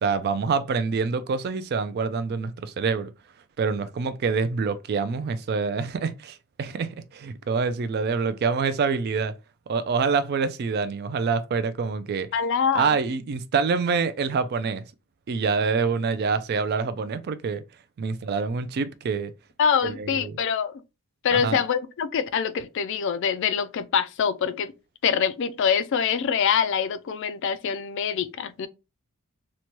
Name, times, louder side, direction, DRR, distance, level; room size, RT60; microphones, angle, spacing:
voice 1, 0.0-3.1 3.6-9.3 9.7-12.3 12.7-14.8 15.3-17.6 18.0-19.3 19.8-20.4 21.3-21.6, right 5 dB, 45° right, 0.3 m, -26 dB
voice 2, 12.3-13.0 19.6-20.7 21.2-24.7 25.0-28.7, left 7 dB, 55° left, 0.3 m, -25 dB
3.0 x 2.1 x 2.8 m
head